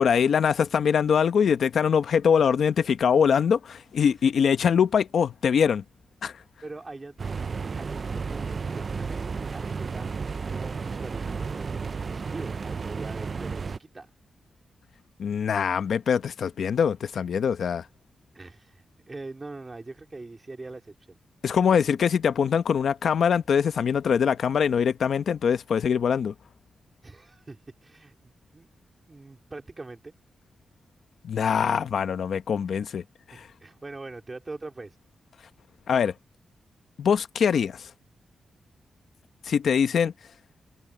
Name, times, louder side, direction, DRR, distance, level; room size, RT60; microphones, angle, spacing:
voice 1, 0.0-5.8 6.2-6.3 15.2-17.8 21.4-26.3 31.2-33.0 33.3-33.5 35.9-36.1 37.0-37.9 39.4-40.1, left 7 dB, 70° left, 1.0 m, -23 dB
voice 2, 6.6-7.2 7.8-10.2 10.5-14.1 18.3-21.2 27.0-28.7 29.1-30.1 33.3-35.0, right 3 dB, 25° right, 3.5 m, -43 dB
sound 1, 7.2-13.8, right 5 dB, 40° right, 0.4 m, -32 dB
open air
wide cardioid pair, 130°, 0 cm